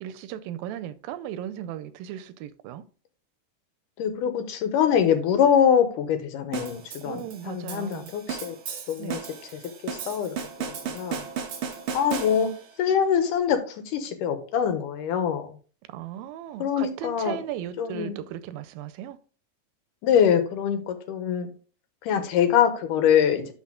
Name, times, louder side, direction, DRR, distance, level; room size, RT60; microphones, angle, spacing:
voice 1, 0.0-2.8 7.1-8.1 9.0-9.2 15.9-19.2, right 11 dB, 90° right, 2.4 m, -36 dB
voice 2, 4.0-8.6 8.9-9.2 9.5-10.4 10.8-11.3 11.9-12.5 12.8-15.5 16.6-17.4 17.8-18.2 20.0-21.5 22.0-23.5, left 8 dB, 75° left, 2.5 m, -24 dB
sound 1, 6.5-12.7, right 7 dB, 65° right, 1.3 m, -35 dB
11.5 x 4.1 x 3.7 m
omnidirectional pair, 4.0 m